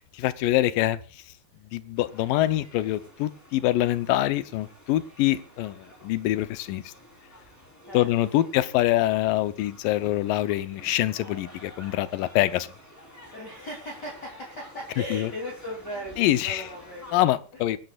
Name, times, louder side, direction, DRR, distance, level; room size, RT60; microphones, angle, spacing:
voice 1, 0.2-1.0 1.7-6.9 7.9-12.7 15.1-15.3 16.2-16.6 17.1-17.8, left 15 dB, 85° left, 2.5 m, -25 dB
sound 1, 1.9-17.1, equal, 5° left, 3.3 m, -50 dB
voice 2, 7.9-8.5 13.3-17.2, left 1 dB, 30° left, 3.2 m, -38 dB
23.5 x 11.0 x 2.4 m
omnidirectional pair, 3.9 m